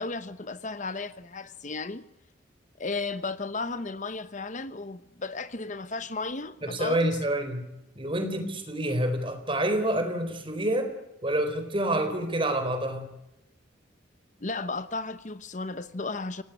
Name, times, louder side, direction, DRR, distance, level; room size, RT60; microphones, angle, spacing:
voice 1, 0.0-2.0 2.8-7.2 14.4-16.4, left 3 dB, 40° left, 0.9 m, -34 dB
voice 2, 6.6-7.7 8.0-10.9 11.2-13.1, right 1 dB, 25° right, 4.2 m, -28 dB
26.5 x 18.5 x 9.5 m
head